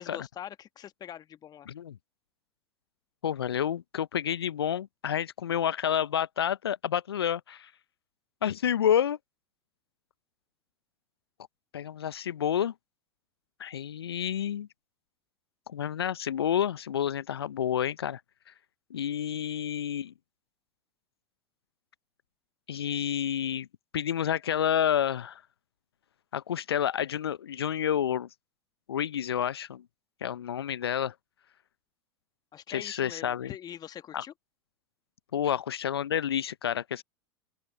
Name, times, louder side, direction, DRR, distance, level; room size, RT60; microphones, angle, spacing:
voice 1, 0.0-1.7 32.5-34.3 35.4-35.5, left 10 dB, 30° left, 1.4 m, -43 dB
voice 2, 3.2-7.7 8.4-9.2 11.7-12.7 13.6-14.7 15.7-18.2 18.9-20.1 22.7-23.7 23.9-25.4 26.3-28.3 28.9-29.8 30.2-31.1 32.7-33.5 34.1-34.2 35.3-37.0, left 9 dB, 75° left, 0.7 m, -29 dB
open air
figure-of-eight pair, 85°, 13 cm